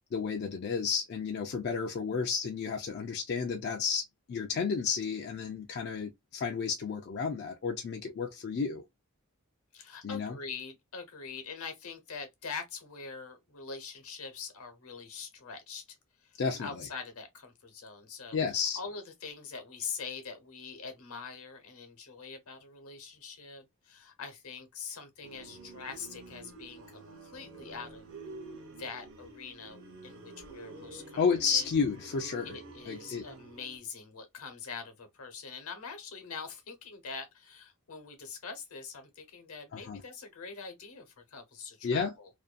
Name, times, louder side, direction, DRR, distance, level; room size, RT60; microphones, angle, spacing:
voice 1, 0.1-8.8 10.0-10.3 16.4-16.7 18.3-18.8 31.2-32.6 32.9-33.3 39.7-40.0 41.8-42.1, left 5 dB, 50° left, 0.3 m, -32 dB
voice 2, 9.7-15.8 16.2-18.4 18.8-28.1 28.8-31.7 32.4-42.3, left 5 dB, 75° left, 0.9 m, -44 dB
sound 1, 25.2-33.8, right 3 dB, 60° right, 0.7 m, -49 dB
2.5 x 2.2 x 2.4 m
head